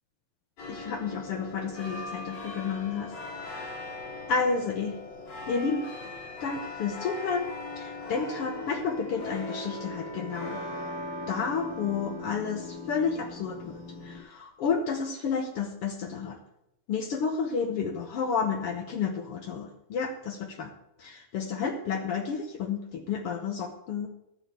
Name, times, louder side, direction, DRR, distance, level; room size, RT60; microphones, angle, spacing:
sound 1, 0.6-14.2, left 2 dB, 55° left, 5.5 m, -39 dB
voice 1, 0.7-3.8 4.3-5.0 5.5-5.9 6.4-7.5 7.8-10.6 11.3-16.4 16.9-20.7 21.0-24.1, left 5 dB, 85° left, 4 dB, 1.2 m, -31 dB
12.5 x 8.0 x 8.1 m, 0.85 s
omnidirectional pair, 4.1 m